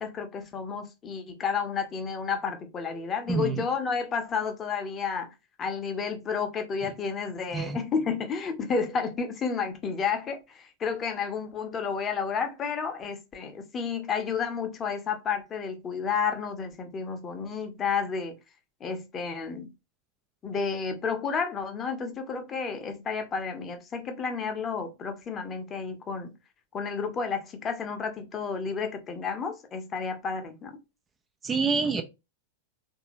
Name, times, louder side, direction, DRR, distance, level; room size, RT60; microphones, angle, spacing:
voice 1, 0.0-5.3 5.6-18.4 18.8-19.7 20.4-26.3 26.7-30.7, left 5 dB, 25° left, 0.7 m, -31 dB
voice 2, 3.3-3.7 7.5-7.8 31.4-32.0, right 5 dB, 20° right, 0.4 m, -27 dB
3.6 x 2.6 x 3.0 m
figure-of-eight pair, 90°, 0 cm